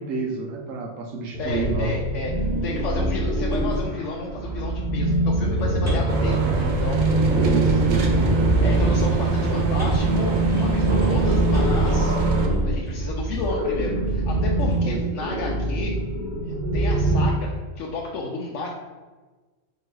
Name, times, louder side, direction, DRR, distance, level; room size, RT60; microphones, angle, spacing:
voice 1, 0.0-2.0 7.3-9.2 14.8-15.2, right 4 dB, 85° right, 1 dB, 1.0 m, -31 dB
sound 1, 1.3-17.2, right 1 dB, 40° right, 0.8 m, -25 dB
voice 2, 1.4-7.0 8.6-12.1 12.6-15.9 16.7-18.7, left 3 dB, 75° left, -2 dB, 0.9 m, -32 dB
sound 2, 2.4-4.0 5.1-13.6 14.1-14.9, right 1 dB, 10° right, 1.3 m, -31 dB
sound 3, 6.1-12.5, right 4 dB, 60° right, 0.5 m, -22 dB
4.5 x 2.9 x 3.1 m, 1.3 s
omnidirectional pair, 1.3 m